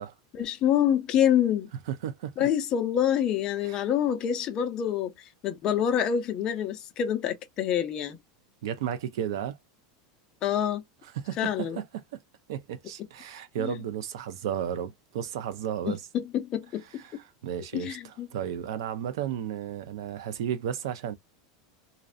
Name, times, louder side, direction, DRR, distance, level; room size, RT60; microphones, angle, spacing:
voice 1, 0.3-1.7 2.4-8.2 10.4-10.8 11.4-11.8 13.6-13.8 15.8-17.0 17.7-18.3, left 9 dB, 30° left, 0.4 m, -27 dB
voice 2, 1.9-2.5 3.7-3.8 8.6-9.6 11.1-12.2 12.5-16.0 17.4-21.2, right 10 dB, 75° right, 0.5 m, -33 dB
2.5 x 2.1 x 2.4 m
supercardioid pair, 165°, 2 cm